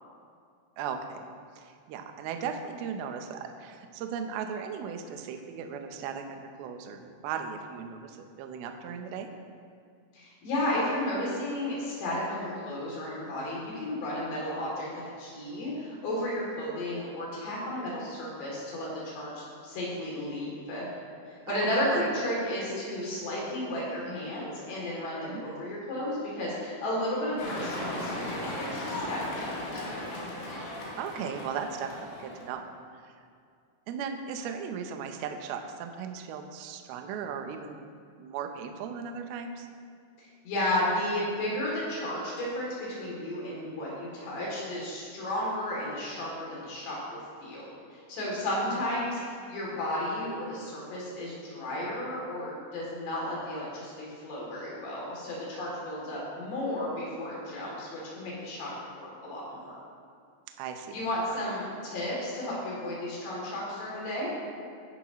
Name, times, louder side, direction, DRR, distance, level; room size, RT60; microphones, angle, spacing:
voice 1, 0.8-1.3 1.6-9.3 21.5-22.1 25.3-25.4 30.6-32.6 32.9-33.1 33.9-37.9 38.2-39.7 48.7-48.8 56.0-56.2 60.6-60.9, right 7 dB, 85° right, 5 dB, 2.2 m, -37 dB
voice 2, 10.1-14.9 15.2-20.8 21.5-29.8 40.2-47.6 47.9-49.2 49.5-58.7 59.0-59.8 60.9-64.3, left 1 dB, 65° left, -5 dB, 4.9 m, -33 dB
sound 1, 27.4-32.5, left 1 dB, 90° left, 4.7 m, -36 dB
16.0 x 10.5 x 3.1 m, 2.3 s
omnidirectional pair, 5.5 m